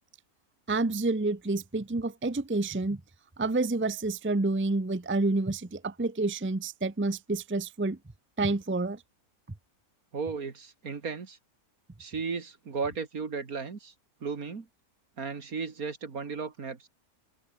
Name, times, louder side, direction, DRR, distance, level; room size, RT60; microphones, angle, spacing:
voice 1, 0.7-3.0 3.4-8.0 8.4-9.0, right 2 dB, 10° right, 0.7 m, -29 dB
voice 2, 10.1-11.4 12.0-13.9 14.2-14.7 15.2-16.9, right 5 dB, 70° right, 2.6 m, -35 dB
open air
omnidirectional pair, 1.6 m